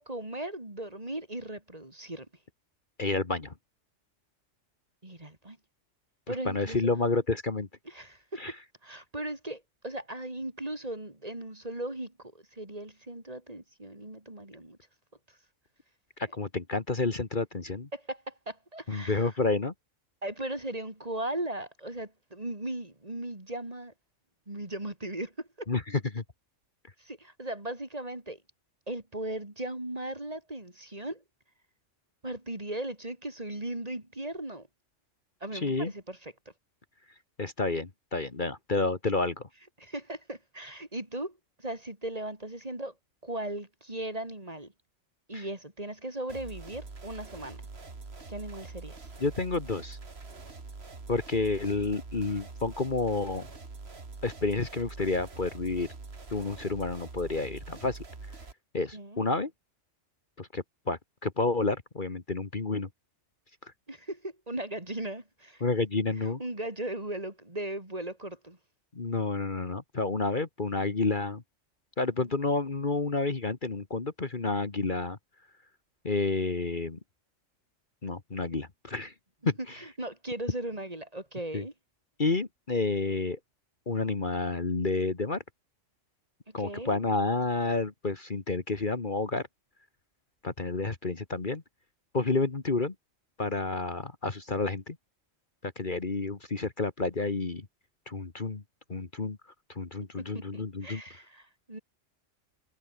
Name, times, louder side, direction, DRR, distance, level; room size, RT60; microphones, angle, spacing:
voice 1, 0.0-2.3 5.0-5.6 6.3-6.9 7.9-8.6 8.8-14.8 17.9-19.3 20.2-23.9 24.5-25.7 27.0-28.4 28.9-31.2 32.2-34.7 35.4-36.3 39.8-42.9 43.2-44.7 45.3-47.6 48.3-49.1 58.9-59.2 63.9-65.6 66.2-68.6 72.2-72.3 79.7-81.7 86.5-87.0 100.2-101.8, right 1 dB, 30° right, 3.7 m, -38 dB
voice 2, 3.0-3.5 6.3-7.7 8.4-8.5 16.3-17.9 18.9-19.7 25.7-26.2 35.6-35.9 37.4-39.4 45.3-45.4 49.2-50.0 51.1-53.5 54.2-55.9 56.3-58.0 58.7-59.5 60.4-62.9 65.6-66.4 68.9-71.4 72.0-75.2 76.0-77.0 78.0-79.1 79.4-79.8 81.5-81.6 82.2-83.4 83.9-85.4 86.5-89.5 90.4-91.6 92.1-92.9 93.4-94.9 95.6-97.6 98.1-98.6 98.9-99.4 99.7-101.0, left 3 dB, 40° left, 1.8 m, -30 dB
sound 1, 46.3-58.5, right 3 dB, 55° right, 2.7 m, -44 dB
omnidirectional pair, 1.3 m